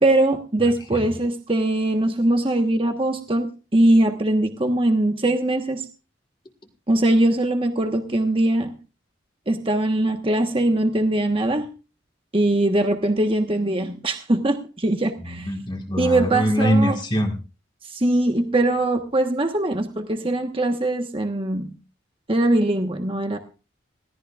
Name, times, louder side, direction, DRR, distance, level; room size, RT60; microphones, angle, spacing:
voice 1, 0.0-5.8 6.9-8.7 9.5-11.7 12.3-15.5 16.0-16.9 17.9-21.7 22.3-23.4, right 1 dB, 30° right, 5 dB, 1.2 m, -21 dB
voice 2, 15.2-17.3, equal, 25° left, 2 dB, 1.7 m, -23 dB
21.0 x 17.0 x 2.4 m, 0.34 s
head